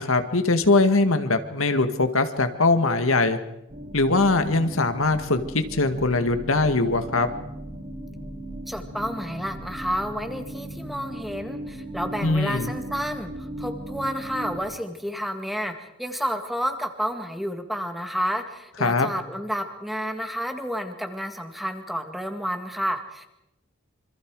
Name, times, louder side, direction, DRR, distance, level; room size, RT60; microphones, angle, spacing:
voice 1, 0.0-3.4 3.9-7.3 12.2-12.7 18.8-19.1, left 3 dB, 85° left, 8 dB, 2.0 m, -21 dB
sound 1, 3.7-14.6, right 1 dB, 35° right, 6.4 m, -37 dB
voice 2, 8.7-23.3, equal, ahead, 6 dB, 1.9 m, -30 dB
26.5 x 26.0 x 4.9 m, 0.88 s
head